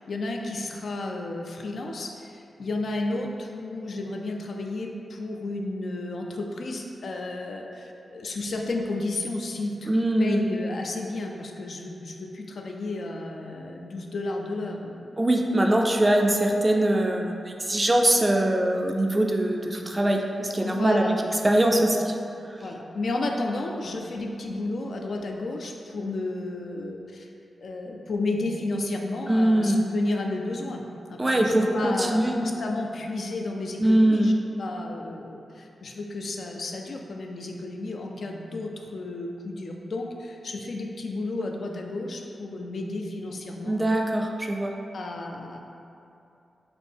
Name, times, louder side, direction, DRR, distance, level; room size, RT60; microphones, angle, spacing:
voice 1, 0.0-15.2 20.6-21.2 21.7-21.9 22.6-27.3 27.6-30.8 31.1-34.3 34.6-43.8 44.9-45.6, left 2 dB, 65° left, 1 dB, 0.4 m, -32 dB
voice 2, 9.9-10.4 15.2-21.0 21.4-22.2 29.3-29.8 31.2-32.4 33.8-34.3 43.7-44.7, right 1 dB, 20° right, 2 dB, 0.4 m, -22 dB
4.2 x 2.7 x 3.4 m, 2.7 s
cardioid pair, 75°, 0 cm